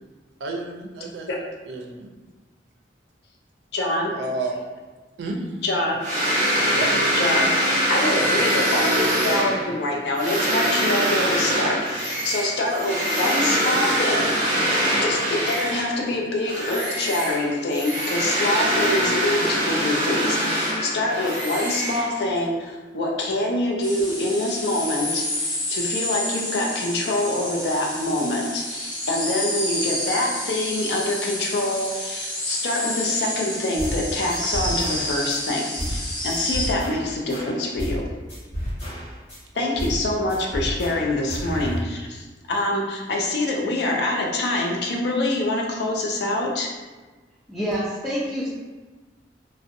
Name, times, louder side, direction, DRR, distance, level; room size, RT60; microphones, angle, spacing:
voice 1, 0.4-1.3 1.7-2.1 4.1-4.6 5.2-5.6 6.7-6.9 8.4-8.5 39.5-39.8, right 2 dB, 75° right, 0 dB, 0.4 m, -31 dB
voice 2, 3.7-4.1 5.6-6.0 7.1-7.5 7.9-38.1 39.6-46.7, left 1 dB, 65° left, -1 dB, 0.4 m, -25 dB
sound 1, 6.0-16.1 16.4-22.4, equal, 45° right, 0.8 m, -23 dB
sound 2, 23.8-36.7, left 1 dB, 25° left, 0.9 m, -29 dB
sound 3, 33.8-34.0 34.3-35.4 35.8-36.0 36.3-38.0 38.3-39.4 39.8-40.0 40.3-41.8, equal, 40° left, 1.0 m, -31 dB
voice 3, 47.5-48.5, equal, ahead, -11 dB, 0.4 m, -27 dB
2.5 x 2.0 x 2.5 m, 1.3 s
head